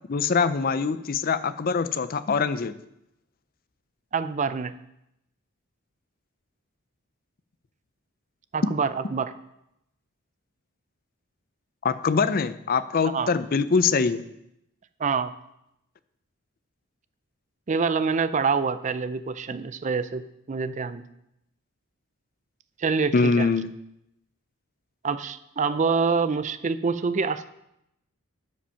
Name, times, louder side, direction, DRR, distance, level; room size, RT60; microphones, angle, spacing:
voice 1, 0.1-2.7 11.8-14.2 23.1-23.7, left 5 dB, 45° left, 13 dB, 0.5 m, -23 dB
voice 2, 4.1-4.7 8.5-9.3 13.0-13.3 15.0-15.3 17.7-21.0 22.8-23.5 25.0-27.5, right 5 dB, 35° right, 13 dB, 0.4 m, -26 dB
12.5 x 5.2 x 5.7 m, 0.84 s
head